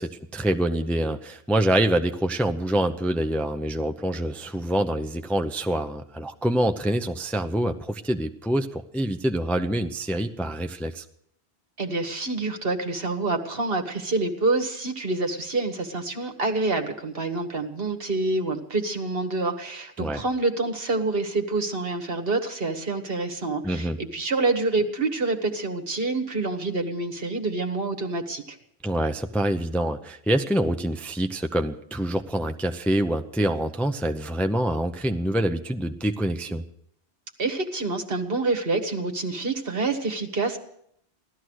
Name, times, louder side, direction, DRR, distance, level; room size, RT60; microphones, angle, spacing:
voice 1, 0.0-11.0 20.0-20.2 23.6-24.0 28.8-36.6, right 1 dB, ahead, 6 dB, 0.6 m, -26 dB
voice 2, 11.8-28.6 37.4-40.6, right 3 dB, 60° right, 4 dB, 1.7 m, -27 dB
16.5 x 12.5 x 6.3 m, 0.70 s
omnidirectional pair, 1.1 m